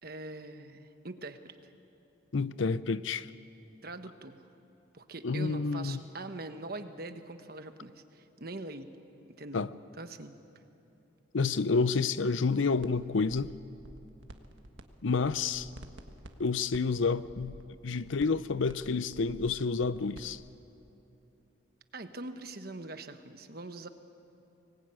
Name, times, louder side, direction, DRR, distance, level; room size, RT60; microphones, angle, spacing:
voice 1, 0.0-1.7 3.8-4.5 4.9-8.9 9.4-9.7 10.0-10.4 21.9-23.9, right 2 dB, 50° right, 8 dB, 1.2 m, -43 dB
voice 2, 2.3-3.3 5.2-6.0 9.5-9.7 11.3-13.5 15.0-15.7 16.4-17.5 17.8-20.4, left 4 dB, 80° left, 15 dB, 0.6 m, -29 dB
sound 1, 12.8-12.9 13.2-14.8 15.1-20.3, right 1 dB, 75° right, 1.5 m, -50 dB
24.0 x 20.0 x 9.0 m, 2.8 s
head